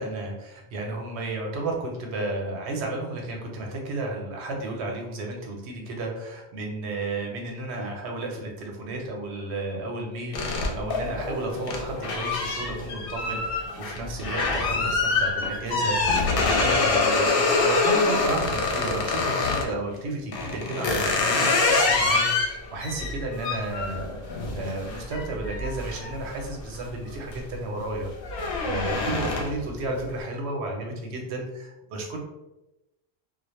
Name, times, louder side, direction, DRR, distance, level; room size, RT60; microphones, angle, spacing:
voice 1, 0.0-32.2, right 2 dB, 90° right, 1 dB, 0.9 m, -33 dB
sound 1, 10.3-19.7 20.3-26.8 27.2-27.5 27.8-29.7, left 3 dB, 65° left, 0.7 m, -25 dB
2.1 x 2.0 x 2.9 m, 0.97 s
omnidirectional pair, 1.1 m